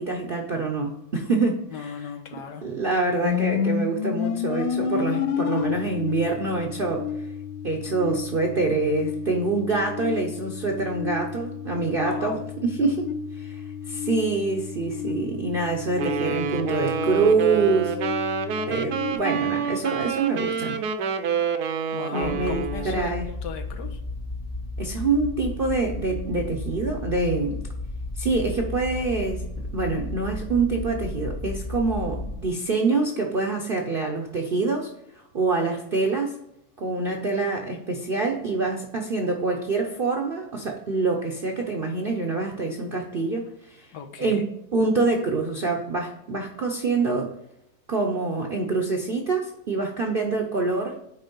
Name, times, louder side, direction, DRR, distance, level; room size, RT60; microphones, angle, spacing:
voice 1, 0.0-2.1 2.6-7.3 7.6-18.0 18.7-20.8 22.1-23.3 24.8-27.6 28.2-29.5 29.7-36.4 36.8-43.9 44.2-47.3 47.9-51.0, right 3 dB, 50° right, 2 dB, 0.7 m, -26 dB
voice 2, 1.7-2.7 12.0-12.4 21.9-24.0 43.9-44.5, left 7 dB, 85° left, 5 dB, 1.6 m, -37 dB
sound 1, 3.2-19.1, left 7 dB, 70° left, 0.9 m, -31 dB
Wind instrument woodwind instrument, 16.0-23.0, right 6 dB, 75° right, 1.3 m, -28 dB
sound 2, 22.2-32.4, left 2 dB, 40° left, 0.9 m, -33 dB
8.9 x 3.4 x 5.3 m, 0.78 s
omnidirectional pair, 1.8 m